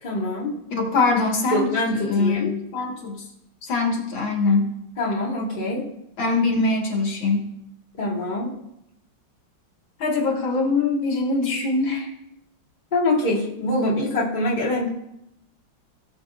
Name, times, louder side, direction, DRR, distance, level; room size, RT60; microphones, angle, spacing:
voice 1, 0.0-0.6 1.5-2.5 5.0-5.9 8.0-8.5 12.9-14.9, left 1 dB, 25° left, -5 dB, 1.8 m, -24 dB
voice 2, 0.7-3.3 3.6-4.7 6.2-7.5 10.0-12.1, left 3 dB, 85° left, 1 dB, 2.2 m, -23 dB
18.0 x 7.1 x 2.4 m, 0.82 s
omnidirectional pair, 2.1 m